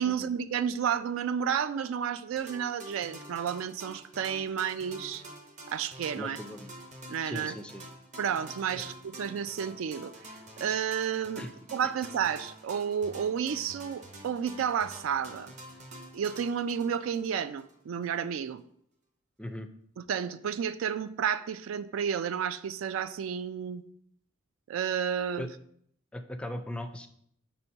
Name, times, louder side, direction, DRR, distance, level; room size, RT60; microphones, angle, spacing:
voice 1, 0.0-5.2 5.7-6.4 7.1-7.5 8.2-11.4 11.7-15.6 16.1-18.6 20.0-23.8 24.7-25.5, right 8 dB, 80° right, 14 dB, 0.3 m, -31 dB
sound 1, 2.4-17.8, right 1 dB, 35° right, 0.8 m, -48 dB
voice 2, 6.1-6.7 7.3-7.8 8.8-8.9 11.4-11.5 19.4-19.7 25.4-25.5 26.1-27.1, left 1 dB, 5° left, 7 dB, 0.4 m, -38 dB
4.4 x 4.2 x 5.4 m, 0.69 s
head